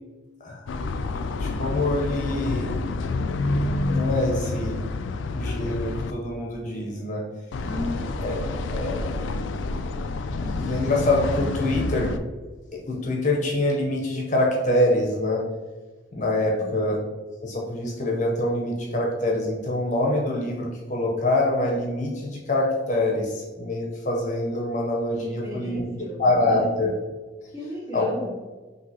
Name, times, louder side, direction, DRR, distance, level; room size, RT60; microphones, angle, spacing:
voice 1, 0.4-1.1 1.4-2.8 3.8-4.8 5.3-7.2 8.2-8.4 8.7-9.1 10.4-12.1 12.9-15.4 16.1-17.0 17.4-26.9 27.9-28.1, left 1 dB, 40° left, -1 dB, 0.7 m, -25 dB
sound 1, 0.7-6.1 7.5-12.2, left 3 dB, 85° left, 0.3 m, -28 dB
voice 2, 7.6-8.2 16.6-16.7 25.2-26.7 27.5-28.4, left 1 dB, 15° right, -6 dB, 0.8 m, -35 dB
5.7 x 2.8 x 2.8 m, 1.3 s
head